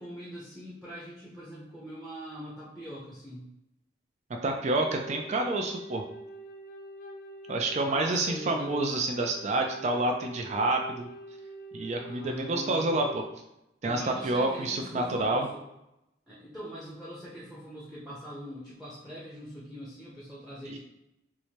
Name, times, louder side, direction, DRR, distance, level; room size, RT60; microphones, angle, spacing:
voice 1, 0.0-3.5 7.8-9.1 11.9-13.1 13.8-15.6 16.3-20.8, equal, ahead, -6 dB, 0.7 m, -42 dB
voice 2, 4.4-6.0 7.5-11.1 11.7-13.2 13.8-15.5 20.7-20.8, right 2 dB, 40° right, 3 dB, 0.3 m, -28 dB
Wind instrument woodwind instrument, 4.7-13.4, right 1 dB, 50° left, 0.4 m, -45 dB
4.6 x 2.1 x 2.8 m, 0.86 s
head